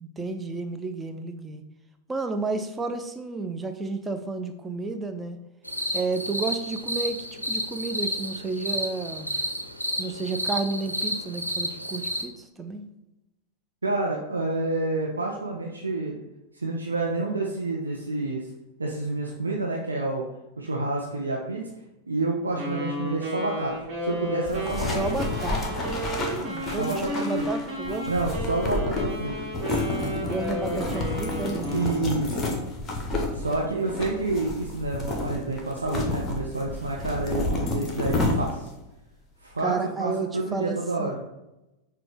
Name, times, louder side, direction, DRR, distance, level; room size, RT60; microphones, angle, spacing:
voice 1, 0.0-1.6 2.1-5.4 5.9-9.3 10.0-12.9 24.8-28.1 30.2-31.8 39.6-41.2, right 3 dB, 15° right, 7 dB, 0.4 m, -32 dB
sound 1, 5.6-12.2, equal, 90° left, 0.4 m, -31 dB
voice 2, 13.8-16.2 16.6-18.5 18.8-20.2 20.6-21.6 22.1-23.7 24.0-25.0 26.8-27.4 28.1-29.3 30.7-31.0 31.7-32.4 33.3-38.7 39.4-39.7 40.0-41.2, right 2 dB, 80° right, -2 dB, 0.5 m, -28 dB
Wind instrument woodwind instrument, 22.6-32.1, equal, 35° right, 1.4 m, -33 dB
sound 2, 24.5-38.8, left 2 dB, 20° left, 0.8 m, -30 dB
5.8 x 2.3 x 3.1 m, 0.95 s
figure-of-eight pair, 90°, 0 cm